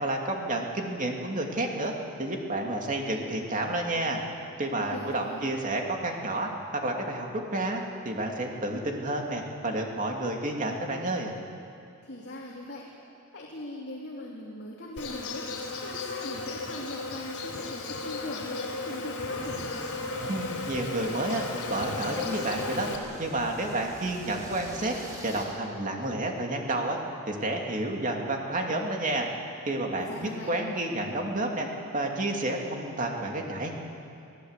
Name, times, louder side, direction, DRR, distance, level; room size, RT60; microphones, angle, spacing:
voice 1, 0.0-1.9 2.2-4.2 4.6-6.5 6.8-11.3 20.3-22.9 23.2-24.9 25.2-27.0 27.3-29.3 29.6-31.7 31.9-33.8, right 1 dB, 35° right, 1 dB, 2.7 m, -30 dB
voice 2, 4.8-5.4 12.0-12.9 13.3-19.8 29.9-30.5, left 1 dB, 50° left, -4 dB, 2.9 m, -40 dB
Insect, 15.0-23.0, left 3 dB, 75° left, 3.7 m, -35 dB
sound 1, 19.2-25.5, right 1 dB, 15° right, 4.4 m, -46 dB
25.0 x 16.5 x 8.3 m, 2.6 s
head